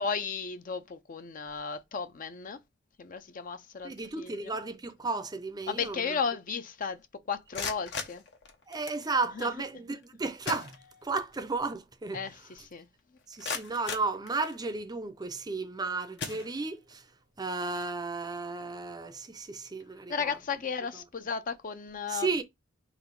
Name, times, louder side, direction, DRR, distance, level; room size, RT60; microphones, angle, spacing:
voice 1, 0.0-2.6 3.0-4.6 5.7-7.0 7.3-8.2 9.4-9.5 12.1-12.9 20.1-22.3, left 5 dB, 45° left, 0.5 m, -34 dB
voice 2, 3.8-6.2 8.7-12.2 13.3-17.1 17.4-20.3 22.1-22.4, right 3 dB, 20° right, 0.5 m, -34 dB
sound 1, 7.3-9.1 10.0-10.1 10.4-11.3 11.7-11.8 12.3-12.4 13.0-14.8 15.5-15.7 16.1-17.0, left 5 dB, 65° left, 0.9 m, -39 dB
4.0 x 2.9 x 4.6 m
head